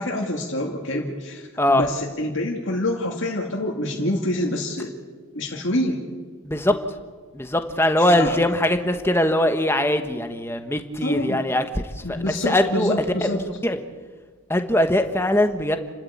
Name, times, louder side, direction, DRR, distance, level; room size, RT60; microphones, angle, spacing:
voice 1, 0.0-4.9 5.3-6.0 8.0-8.4 11.0-11.4 12.0-13.4, left 1 dB, 60° left, -1 dB, 2.3 m, -26 dB
voice 2, 6.4-6.7 7.3-11.6 12.2-12.9 13.6-13.8 14.5-15.8, left 1 dB, 10° left, 7 dB, 1.3 m, -21 dB
30.0 x 13.0 x 8.6 m, 1.5 s
head